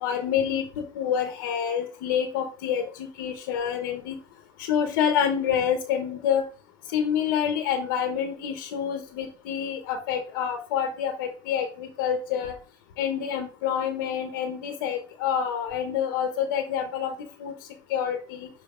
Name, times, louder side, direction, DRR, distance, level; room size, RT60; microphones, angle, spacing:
voice 1, 0.0-4.2 4.6-6.4 6.9-12.5 13.0-17.5 17.9-18.5, left 8 dB, 85° left, 6 dB, 0.9 m, -27 dB
5.7 x 3.4 x 4.9 m, 0.38 s
supercardioid pair, 125°, 11 cm